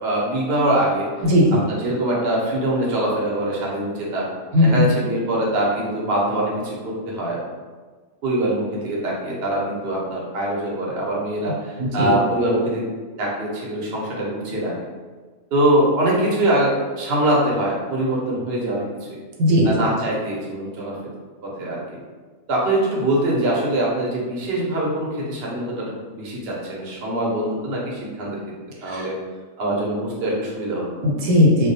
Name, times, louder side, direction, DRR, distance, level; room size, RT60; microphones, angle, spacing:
voice 1, 0.0-1.1 1.7-4.3 4.6-7.4 8.2-12.8 13.2-14.7 15.5-19.2 19.6-21.0 21.4-22.0 22.5-28.4 28.8-29.2 29.6-30.8, right 1 dB, 60° right, -4 dB, 0.8 m, -23 dB
voice 2, 1.2-1.6 4.5-4.9 11.8-12.2 19.4-19.9 28.9-29.1 31.0-31.7, left 1 dB, 85° right, -2 dB, 1.0 m, -17 dB
2.3 x 2.2 x 2.7 m, 1.4 s
omnidirectional pair, 1.4 m